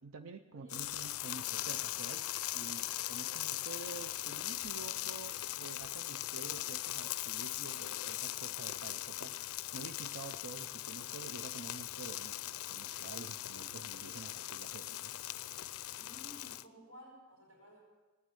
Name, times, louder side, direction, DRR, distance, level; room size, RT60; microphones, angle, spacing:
voice 1, 0.0-2.2 2.5-15.2, right 4 dB, 70° right, 8 dB, 0.6 m, -49 dB
voice 2, 0.5-0.9 15.9-17.8, equal, 90° right, -2 dB, 5.2 m, -56 dB
sound 1, 0.7-16.6, left 15 dB, 75° left, 0.4 m, -40 dB
17.5 x 9.5 x 8.2 m, 1.3 s
head